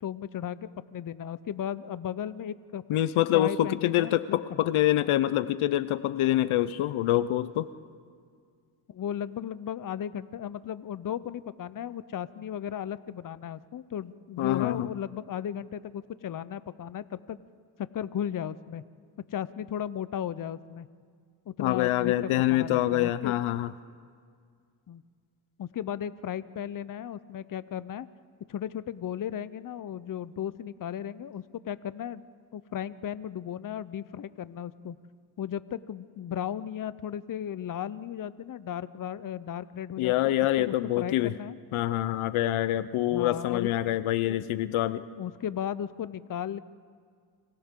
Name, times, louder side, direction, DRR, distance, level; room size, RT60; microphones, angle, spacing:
voice 1, 0.0-2.8 3.3-4.6 8.9-17.4 17.9-18.8 19.3-20.9 21.5-23.4 24.9-25.0 25.6-28.1 28.5-32.2 32.5-35.0 35.4-40.1 40.6-41.5 43.1-43.7 44.3-44.4 45.2-46.6, left 9 dB, 40° left, 16 dB, 0.7 m, -35 dB
voice 2, 2.9-7.7 14.4-14.9 21.6-23.7 40.0-41.3 41.7-45.0, left 14 dB, 85° left, 15 dB, 0.7 m, -26 dB
29.5 x 25.0 x 3.8 m, 2.1 s
cardioid pair, 75°, 48 cm